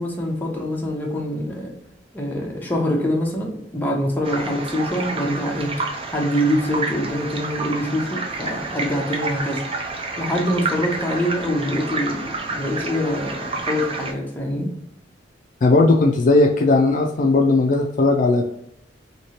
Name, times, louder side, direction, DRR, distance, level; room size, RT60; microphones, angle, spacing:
voice 1, 0.0-1.7 2.1-5.7 6.1-9.6 10.2-14.7, equal, 10° left, -1 dB, 0.8 m, -24 dB
sound 1, 4.2-14.1, right 3 dB, 30° right, 0.5 m, -29 dB
voice 2, 15.6-18.4, left 3 dB, 45° left, 2 dB, 0.3 m, -17 dB
3.0 x 2.8 x 2.9 m, 0.76 s
head